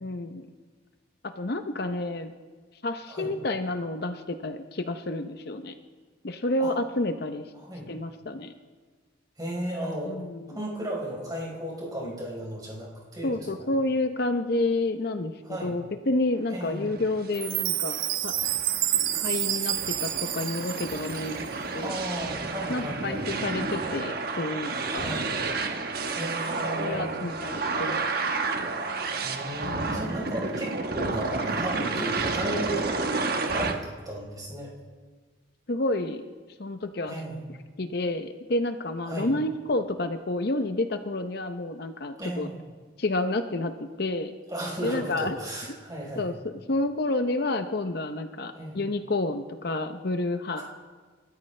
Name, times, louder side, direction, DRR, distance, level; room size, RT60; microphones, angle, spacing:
voice 1, 0.0-0.5 1.2-2.3 2.8-5.7 6.2-7.4 7.9-8.5 10.1-10.5 13.2-15.3 15.6-18.3 19.1-22.0 22.7-25.1 26.8-28.3 29.6-30.1 35.7-36.2 36.6-37.2 37.8-42.5 43.0-44.3 44.8-45.4 46.2-46.3 46.7-50.6, left 2 dB, 55° left, 8 dB, 0.7 m, -29 dB
voice 2, 9.4-10.2 10.5-13.7 15.4-15.8 16.5-16.9 21.8-23.3 25.0-25.3 26.1-27.2 29.2-33.0 33.4-34.7 37.1-37.5 39.1-39.3 42.2-42.6 44.5-46.3 48.5-48.8 50.6-50.7, right 1 dB, 20° right, -3 dB, 4.2 m, -35 dB
sound 1, 16.9-33.7, right 3 dB, 50° right, 1.2 m, -31 dB
Chime, 17.3-21.6, right 12 dB, 90° right, 0.8 m, -29 dB
28.5 x 13.5 x 3.3 m, 1.5 s
head